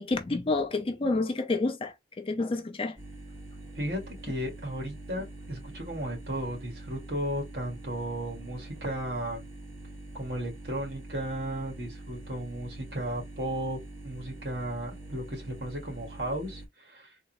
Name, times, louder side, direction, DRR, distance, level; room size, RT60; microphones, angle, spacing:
voice 1, 0.0-3.0, left 3 dB, 30° left, 0.4 m, -29 dB
sound 1, 3.0-16.7, right 1 dB, 15° right, 0.9 m, -45 dB
voice 2, 3.7-9.5 10.1-17.1, right 1 dB, 65° right, 1.7 m, -35 dB
3.6 x 2.0 x 2.9 m
head